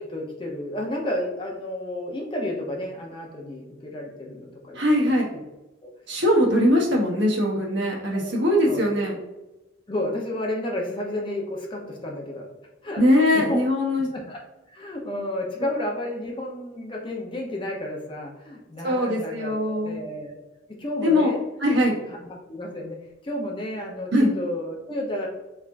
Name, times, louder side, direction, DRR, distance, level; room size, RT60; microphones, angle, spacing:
voice 1, 0.0-5.4 5.8-5.9 8.1-8.8 9.9-12.5 12.8-13.0 13.3-13.6 14.1-14.4 14.7-20.3 20.7-21.4 22.1-23.0 23.2-24.1 24.4-25.3, left 1 dB, 25° left, -1 dB, 0.6 m, -32 dB
voice 2, 4.7-5.3 6.1-9.2 13.0-14.1 18.8-20.0 21.0-21.3 21.6-21.9 24.1-24.3, left 1 dB, 60° right, -1 dB, 0.9 m, -21 dB
3.4 x 3.3 x 2.5 m, 1.0 s
head